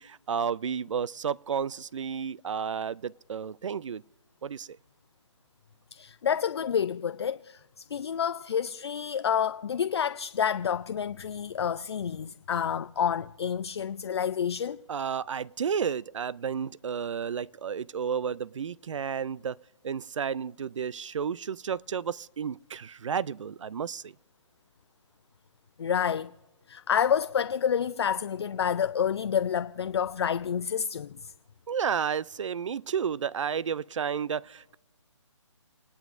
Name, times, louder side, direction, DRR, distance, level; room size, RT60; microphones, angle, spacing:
voice 1, 0.0-4.0 4.4-4.8 14.9-19.6 19.8-24.1 31.7-34.8, right 7 dB, 70° right, 0.4 m, -32 dB
voice 2, 5.9-14.8 25.8-26.3 26.7-31.3, left 8 dB, 55° left, 0.4 m, -29 dB
29.5 x 10.5 x 2.5 m
hypercardioid pair, 160°, 16 cm